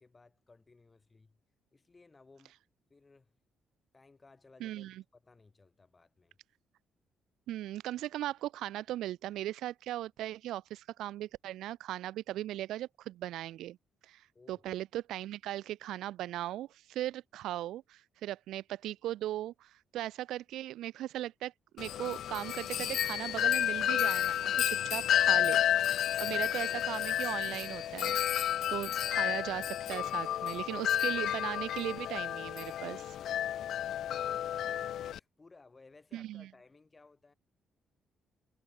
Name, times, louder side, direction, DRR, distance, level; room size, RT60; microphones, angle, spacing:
voice 1, 0.0-1.4 1.7-2.6 2.9-3.4 3.9-6.4 14.3-14.6 33.5-37.3, left 3 dB, 25° left, 7.2 m, -61 dB
voice 2, 4.6-5.0 7.5-13.8 14.0-25.6 26.2-28.2 28.7-33.2 36.1-36.5, right 14 dB, 85° right, 1.8 m, -38 dB
Wind chime, 21.8-35.2, left 11 dB, 70° left, 0.8 m, -31 dB
cardioid pair, 90°, 0 cm